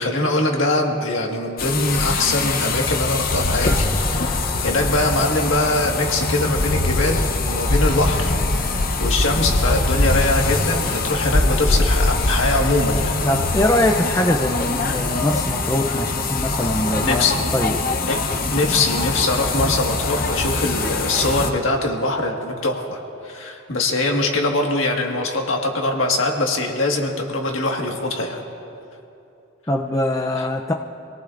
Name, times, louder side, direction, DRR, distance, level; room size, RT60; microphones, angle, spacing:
voice 1, 0.0-8.7 9.0-13.1 17.0-17.4 18.1-18.2 18.5-28.4 30.4-30.5, left 2 dB, 75° left, 1 dB, 1.7 m, -22 dB
sound 1, 1.6-21.5, left 2 dB, 45° left, 0.8 m, -22 dB
voice 2, 13.2-17.3 17.5-17.8 29.7-30.7, left 1 dB, 15° left, 2 dB, 0.5 m, -22 dB
26.5 x 18.5 x 2.6 m, 2.8 s
head